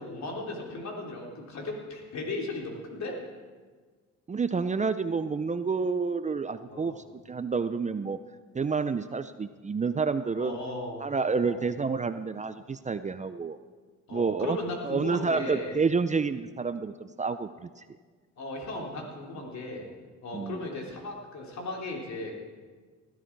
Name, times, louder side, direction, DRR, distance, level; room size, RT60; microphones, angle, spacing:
voice 1, 0.0-3.2 6.7-6.9 10.4-11.0 11.4-11.6 14.1-15.8 18.4-19.9 20.2-22.4, left 2 dB, 65° left, 0 dB, 3.6 m, -36 dB
voice 2, 4.3-8.2 8.5-10.6 11.0-13.6 14.1-14.6 14.8-17.8 20.3-20.6, right 4 dB, 25° right, 11 dB, 0.5 m, -29 dB
19.5 x 12.5 x 4.7 m, 1.5 s
cardioid pair, 90°, 30 cm